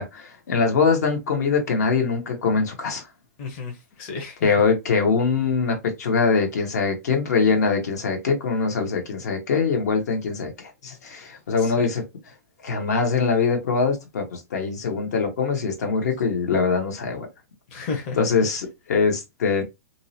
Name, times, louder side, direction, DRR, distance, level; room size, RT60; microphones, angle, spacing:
voice 1, 0.0-3.0 4.4-12.0 12.6-17.3 18.2-19.6, left 5 dB, 70° left, 0.9 m, -23 dB
voice 2, 3.4-4.5 11.6-11.7 17.7-18.5, left 4 dB, 40° left, 0.8 m, -33 dB
2.7 x 2.0 x 2.7 m
hypercardioid pair, 140°, 9 cm